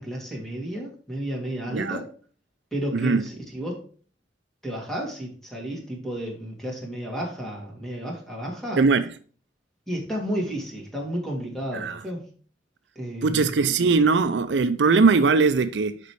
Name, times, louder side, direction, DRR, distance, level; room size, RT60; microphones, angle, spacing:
voice 1, 0.0-2.1 2.7-3.9 4.6-8.8 9.9-12.3 13.0-13.5, equal, 5° left, 2.3 m, -32 dB
voice 2, 2.9-3.2 8.8-9.1 11.7-12.0 13.2-16.0, right 4 dB, 70° right, 0.5 m, -20 dB
6.8 x 5.3 x 4.7 m
head